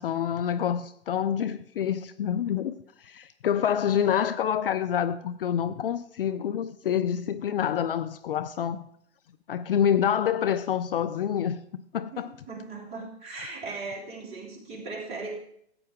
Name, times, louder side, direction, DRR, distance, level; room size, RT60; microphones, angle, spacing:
voice 1, 0.0-8.8 9.5-11.6 11.9-12.3 13.4-13.5, left 9 dB, 55° left, 0.6 m, -27 dB
voice 2, 12.1-15.4, right 3 dB, 20° right, 2.8 m, -38 dB
14.0 x 8.7 x 3.6 m
hypercardioid pair, 130°, 34 cm